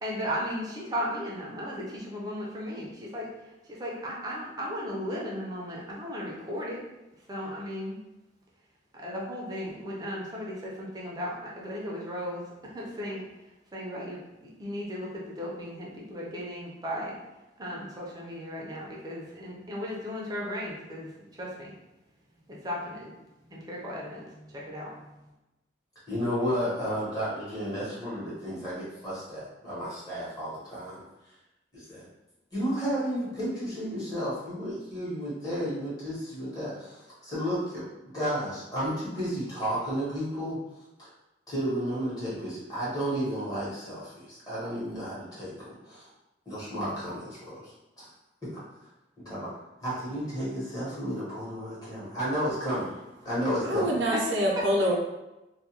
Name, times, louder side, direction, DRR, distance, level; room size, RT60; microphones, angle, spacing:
voice 1, 0.0-6.8 7.3-8.0 8.9-13.2 13.7-14.2 14.6-17.2 17.6-21.1 21.4-21.7 22.5-25.3 54.1-54.2 54.6-54.7, equal, 20° right, -4 dB, 0.5 m, -36 dB
voice 2, 26.1-31.0 31.7-32.1 32.5-37.8 38.1-40.6 41.0-41.1 41.5-46.1 46.5-48.0 48.5-48.6 49.2-49.5 49.8-52.9 53.2-53.9, equal, 20° left, -9 dB, 1.0 m, -32 dB
voice 3, 53.6-54.9, equal, 80° right, -1 dB, 0.6 m, -25 dB
2.3 x 2.2 x 2.8 m, 0.99 s
head